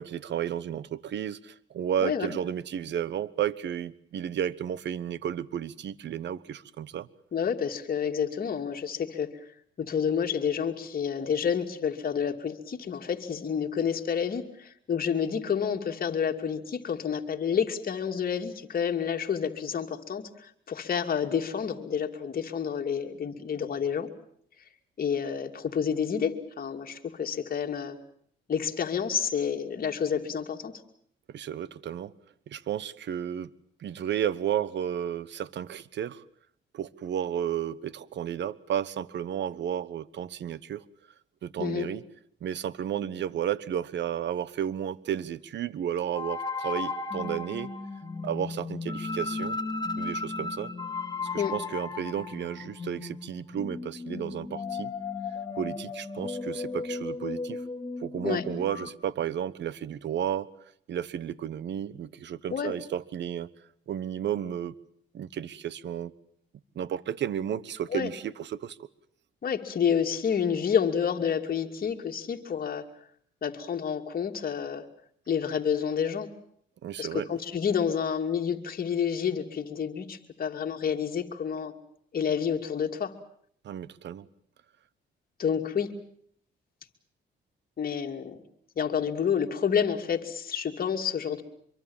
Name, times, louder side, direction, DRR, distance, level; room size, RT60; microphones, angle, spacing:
voice 1, 0.0-7.1 31.3-32.1 32.5-33.5 33.8-36.2 36.7-40.8 41.4-42.0 42.4-47.7 48.2-49.6 50.0-50.7 51.3-54.9 55.6-57.6 58.0-60.5 60.9-63.5 63.9-64.7 65.1-66.1 66.7-68.9 76.8-77.3 83.6-84.3, right 9 dB, 65° right, 19 dB, 1.1 m, -32 dB
voice 2, 2.0-2.4 7.3-9.5 9.8-24.1 25.0-28.0 28.5-30.7 41.6-41.9 51.4-51.5 58.2-58.4 62.5-62.7 67.9-68.1 69.4-72.9 73.4-74.8 75.3-76.3 77.0-81.7 82.1-83.1 85.4-85.9 87.8-88.4 88.8-91.4, left 7 dB, 50° left, 4 dB, 2.7 m, -29 dB
sound 1, 46.1-58.9, left 3 dB, 20° left, 2.7 m, -35 dB
25.0 x 23.5 x 7.3 m, 0.66 s
cardioid pair, 90°, 20 cm